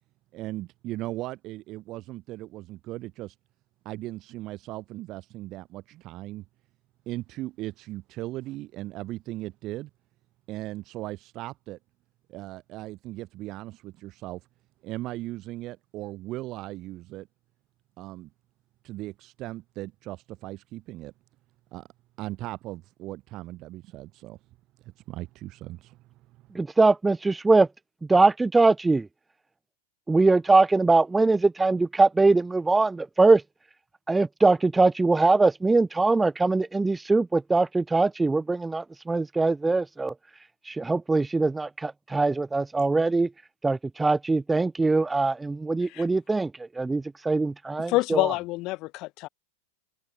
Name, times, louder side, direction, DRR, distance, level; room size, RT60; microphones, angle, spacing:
voice 1, 0.3-3.4 3.8-6.5 7.1-9.9 10.5-11.8 12.3-14.5 14.8-17.3 18.0-18.3 18.8-21.1 21.7-21.9 22.2-24.4 24.8-26.5, right 17 dB, 35° right, 2.1 m, -38 dB
voice 2, 26.5-27.7 28.1-29.1 30.1-33.4 34.1-40.1 40.7-43.3 43.6-48.3, right 3 dB, 10° right, 0.7 m, -22 dB
voice 3, 47.9-49.3, left 20 dB, 40° left, 1.5 m, -27 dB
open air
figure-of-eight pair, 90°, 0 cm